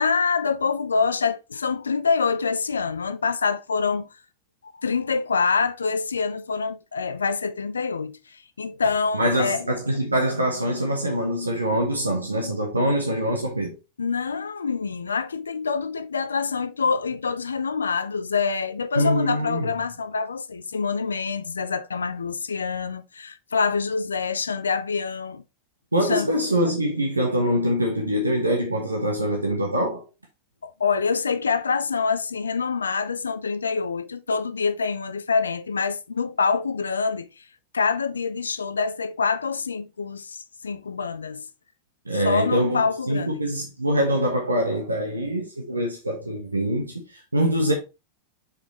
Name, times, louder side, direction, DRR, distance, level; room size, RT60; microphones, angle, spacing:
voice 1, 0.0-4.1 4.8-9.6 14.0-25.4 26.0-26.3 30.6-37.4 37.7-41.4 42.1-43.4, left 5 dB, 75° left, 0.4 m, -26 dB
voice 2, 9.1-13.8 18.9-19.7 25.9-30.0 42.0-47.7, equal, 80° right, 1.2 m, -24 dB
6.7 x 5.0 x 3.1 m
figure-of-eight pair, 90°, 0 cm